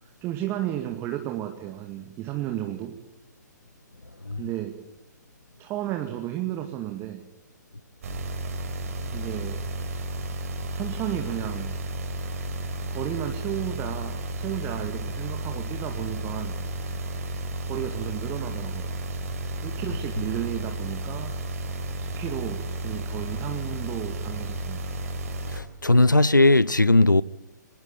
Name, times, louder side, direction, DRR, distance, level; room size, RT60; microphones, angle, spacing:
voice 1, 0.0-3.0 4.4-4.8 5.6-7.3 9.1-9.6 10.7-11.8 12.9-16.6 17.6-18.9 19.6-21.3 22.0-24.9, right 13 dB, 25° right, 2.2 m, -33 dB
sound 1, 8.0-25.6, right 1 dB, 50° right, 5.1 m, -33 dB
voice 2, 25.5-27.2, left 2 dB, 85° left, 0.8 m, -18 dB
24.5 x 20.0 x 9.0 m
figure-of-eight pair, 120°, 10 cm